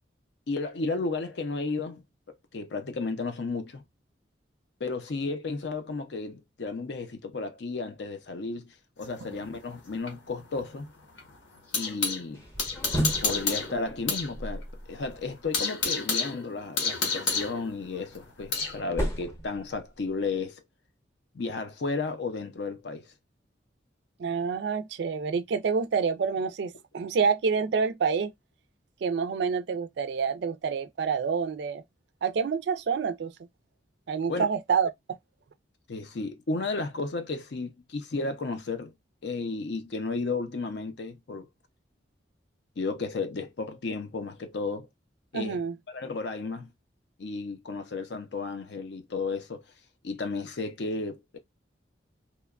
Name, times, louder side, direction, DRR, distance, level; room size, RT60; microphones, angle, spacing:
voice 1, 0.5-2.0 2.5-3.8 4.8-10.9 11.7-12.4 13.2-20.6 21.3-23.1 34.3-34.5 35.9-38.9 39.2-41.5 42.8-44.9 45.3-45.6 45.9-46.7 47.2-49.6 50.0-51.4, left 3 dB, 65° left, 0.5 m, -33 dB
sound 1, 9.0-12.2 12.6-14.3 14.6-14.7 15.1-18.8, left 4 dB, 85° left, 0.9 m, -30 dB
sound 2, 12.3-15.5 17.7-20.3, equal, 15° left, 0.7 m, -35 dB
voice 2, 24.2-28.3 29.0-31.8 32.2-33.3 34.1-34.9 45.3-45.7, right 5 dB, 65° right, 0.3 m, -27 dB
2.9 x 2.2 x 2.3 m
head